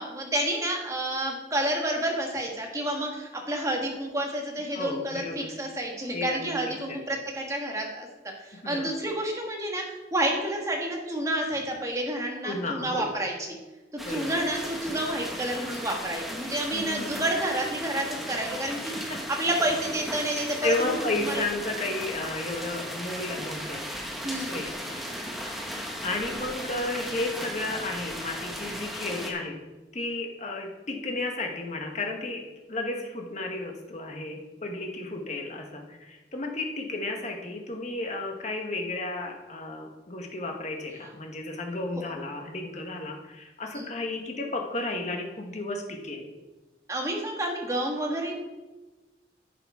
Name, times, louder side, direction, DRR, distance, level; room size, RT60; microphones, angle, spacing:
voice 1, 0.0-8.1 8.4-9.8 10.1-13.6 14.1-21.0 21.2-21.4 24.2-24.7 43.7-43.9 46.9-48.3, right 1 dB, 20° right, 1 dB, 1.6 m, -29 dB
voice 2, 4.7-5.5 6.1-7.0 8.6-8.9 12.4-13.1 14.0-14.3 16.7-17.3 18.5-18.6 18.9-19.2 20.6-23.8 24.4-25.0 26.0-29.6 29.9-46.3, left 2 dB, 40° left, 2 dB, 1.4 m, -33 dB
sound 1, 14.0-29.3, equal, ahead, 1.1 m, -36 dB
11.0 x 6.9 x 4.8 m, 1.1 s
head